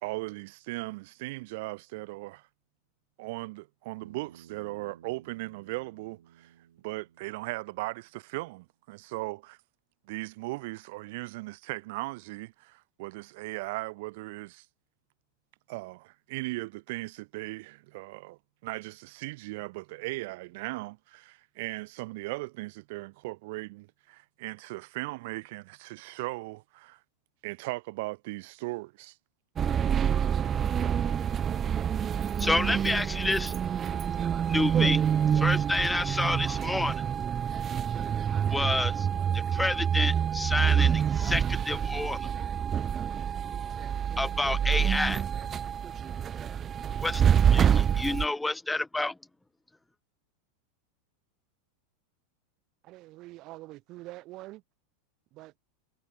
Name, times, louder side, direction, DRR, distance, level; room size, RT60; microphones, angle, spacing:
voice 1, 0.0-2.5 3.2-6.5 6.8-9.6 10.1-14.7 15.7-27.0 27.4-29.2, right 23 dB, 65° right, 0.6 m, -38 dB
Bass guitar, 4.0-8.3, right 10 dB, 85° right, 3.5 m, -56 dB
sound 1, 29.6-48.3, right 8 dB, 30° right, 0.7 m, -27 dB
voice 2, 32.4-33.5 34.5-37.0 38.5-39.1 39.3-42.3 44.2-45.2 47.0-47.2 47.5-49.2, left 2 dB, 5° left, 0.7 m, -29 dB
voice 3, 52.8-54.6 55.3-55.5, right 19 dB, 50° right, 4.1 m, -45 dB
hypercardioid pair, 110°, 0 cm